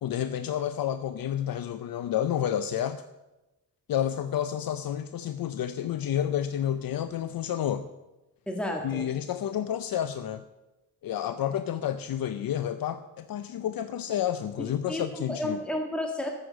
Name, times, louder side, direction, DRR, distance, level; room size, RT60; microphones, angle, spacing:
voice 1, 0.0-3.0 3.9-7.9 8.8-10.4 11.0-15.6, left 10 dB, 70° left, 12 dB, 0.6 m, -30 dB
voice 2, 8.5-9.1 14.6-15.0 15.3-16.3, left 1 dB, 5° left, 2 dB, 1.7 m, -32 dB
13.0 x 8.0 x 6.3 m, 1.1 s
cardioid pair, 100°, 36 cm